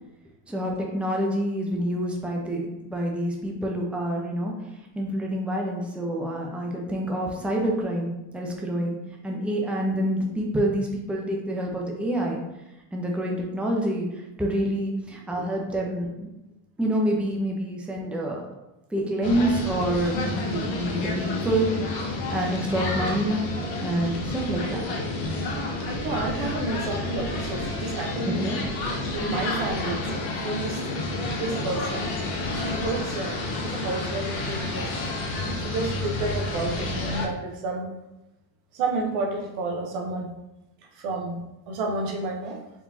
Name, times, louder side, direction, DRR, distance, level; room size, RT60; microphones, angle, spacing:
voice 1, 0.5-4.5 4.9-9.0 9.2-12.4 12.9-16.3 16.8-18.4 18.9-21.7 22.3-23.4 23.8-25.2 28.3-28.6, right 1 dB, ahead, -1 dB, 0.7 m, -27 dB
sound 1, 19.2-37.3, left 2 dB, 80° left, 1.2 m, -30 dB
voice 2, 26.0-28.4 29.1-30.8 31.3-32.0 32.5-34.9 35.3-37.9 38.7-40.3 40.9-42.6, right 3 dB, 70° right, 2 dB, 1.0 m, -31 dB
4.7 x 3.5 x 2.7 m, 0.95 s
supercardioid pair, 90°, 49 cm